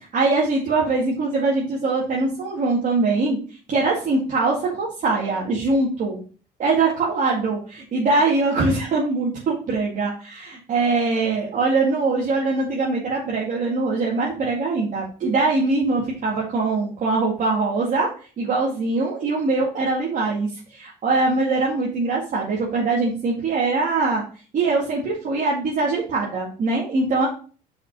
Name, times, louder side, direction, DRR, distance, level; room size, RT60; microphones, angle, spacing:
voice 1, 0.1-3.4 3.7-6.2 6.6-10.1 10.4-18.1 18.4-24.2 24.5-27.3, right 3 dB, 50° right, -5 dB, 2.2 m, -22 dB
5.6 x 5.0 x 5.4 m, 0.39 s
cardioid pair, 110°, 17 cm